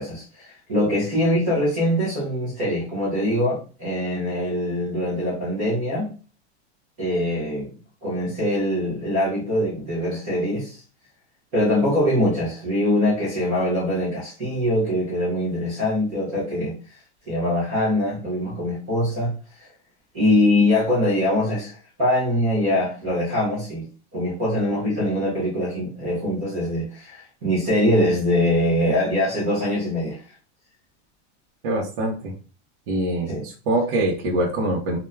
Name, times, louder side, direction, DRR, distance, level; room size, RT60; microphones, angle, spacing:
voice 1, 0.0-6.1 7.0-7.7 8.0-10.8 11.5-16.7 17.3-19.3 19.6-19.7 20.1-23.9 24.1-30.2 33.3-33.4, left 1 dB, 15° right, -8 dB, 0.3 m, -23 dB
voice 2, 31.6-32.3 32.9-35.0, right 1 dB, 50° right, -2 dB, 0.7 m, -24 dB
2.3 x 2.1 x 3.1 m, 0.36 s
supercardioid pair, 175°, 35 cm